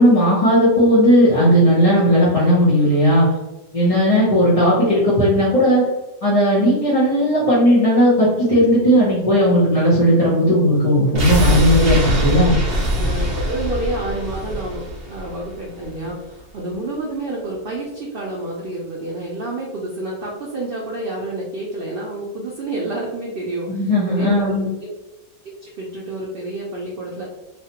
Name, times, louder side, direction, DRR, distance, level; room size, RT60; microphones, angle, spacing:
voice 1, 0.0-3.3 3.7-5.8 6.2-12.6 23.7-24.7, equal, 30° left, -10 dB, 0.7 m, -15 dB
sound 1, 11.1-16.1 16.4-16.5, equal, 50° right, 0.7 m, -22 dB
voice 2, 13.0-24.9 25.4-27.2, right 2 dB, 80° right, -3 dB, 0.5 m, -29 dB
3.1 x 2.1 x 2.8 m, 1.0 s
omnidirectional pair, 1.6 m